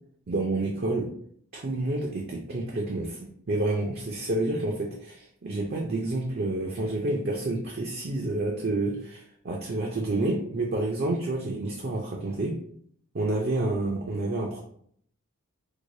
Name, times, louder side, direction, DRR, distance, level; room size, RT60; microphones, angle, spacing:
voice 1, 0.3-1.1 1.5-3.2 3.5-12.6 13.1-14.6, right 2 dB, 45° right, -1 dB, 0.5 m, -29 dB
4.6 x 2.1 x 2.6 m, 0.62 s
head